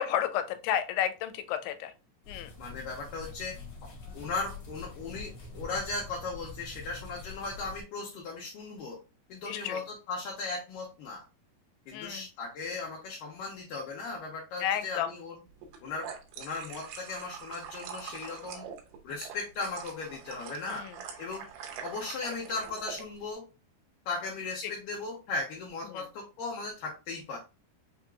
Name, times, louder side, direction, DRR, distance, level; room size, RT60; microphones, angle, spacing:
voice 1, 0.0-1.9 2.3-2.5 9.4-9.8 11.9-12.3 14.6-15.1 20.7-21.0 24.6-24.7 25.8-26.1, left 10 dB, 90° left, 10 dB, 2.6 m, -32 dB
sound 1, 2.2-7.8, left 3 dB, 50° left, 1.8 m, -45 dB
voice 2, 2.6-9.0 9.3-11.2 11.9-15.4 15.8-16.1 16.4-18.6 19.0-20.8 21.2-21.5 21.8-23.4 24.1-27.4, left 3 dB, 75° left, -2 dB, 2.2 m, -37 dB
sound 2, 15.6-23.1, right 7 dB, 90° right, 2.9 m, -44 dB
6.5 x 2.9 x 2.3 m, 0.30 s
omnidirectional pair, 4.6 m